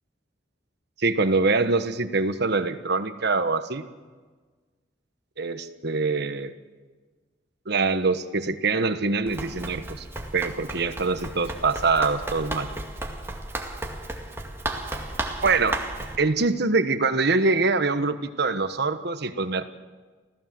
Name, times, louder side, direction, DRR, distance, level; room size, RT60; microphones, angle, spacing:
voice 1, 1.0-3.8 5.4-6.5 7.7-10.0 10.3-12.7 15.4-15.8 16.2-19.6, right 3 dB, 60° right, 10 dB, 1.3 m, -24 dB
Run, 9.3-16.2, right 2 dB, 15° right, 2.1 m, -34 dB
26.5 x 16.0 x 7.8 m, 1.4 s
head